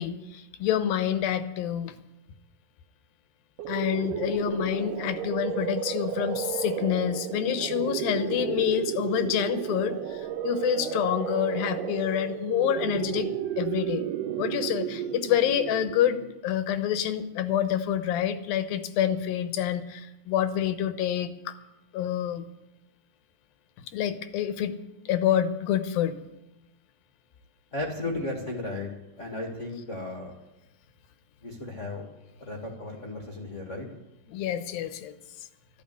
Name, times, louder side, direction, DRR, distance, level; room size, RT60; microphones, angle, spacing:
voice 1, 0.0-2.0 3.7-14.1 14.4-21.6 21.9-22.4 23.8-24.8 25.1-26.2 34.3-35.1, left 10 dB, 80° left, 10 dB, 2.7 m, -27 dB
sound 1, 3.6-16.4, right 10 dB, 75° right, 2.4 m, -32 dB
voice 2, 27.7-28.9 29.2-30.3 31.4-32.1 32.4-33.9, left 2 dB, 30° left, 1 dB, 1.5 m, -34 dB
13.5 x 12.0 x 8.3 m, 0.94 s
omnidirectional pair, 4.2 m